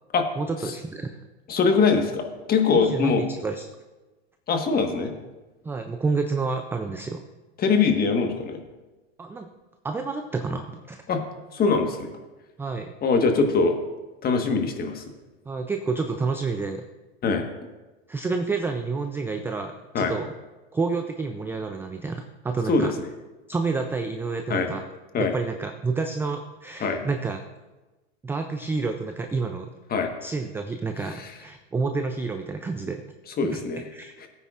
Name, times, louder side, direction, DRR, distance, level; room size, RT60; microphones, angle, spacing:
voice 1, 0.4-1.2 2.7-3.7 5.6-7.2 9.2-9.5 9.8-11.0 12.6-12.9 15.5-16.8 18.1-20.3 20.7-22.9 23.5-24.8 25.2-27.4 28.2-29.7 30.2-33.0 33.5-33.6 33.9-34.1, right 4 dB, 5° right, 6 dB, 0.3 m, -29 dB
voice 2, 1.5-3.2 4.5-5.1 7.6-8.6 11.1-11.2 11.5-12.1 13.0-13.7 14.2-15.0 17.2-17.4 19.9-20.1 22.7-22.9 24.5-24.7 25.1-25.3 26.8-27.0 29.9-30.1 31.2-31.3 33.4-33.8 34.2-34.3, left 4 dB, 25° left, 5 dB, 1.4 m, -22 dB
17.0 x 9.1 x 2.5 m, 1.2 s
hypercardioid pair, 115°, 34 cm